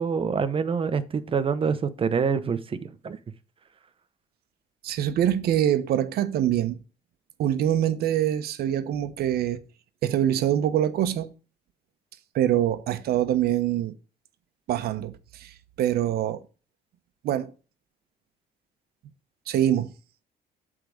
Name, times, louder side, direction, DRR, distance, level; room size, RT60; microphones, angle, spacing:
voice 1, 0.0-2.8 3.0-3.2, right 6 dB, 30° right, 0.9 m, -26 dB
voice 2, 4.8-6.8 7.4-9.6 10.0-11.3 12.3-14.0 14.7-16.4 17.2-17.5 19.5-19.9, right 11 dB, 70° right, 1.0 m, -24 dB
8.2 x 3.7 x 6.4 m
cardioid pair, 110°, 17 cm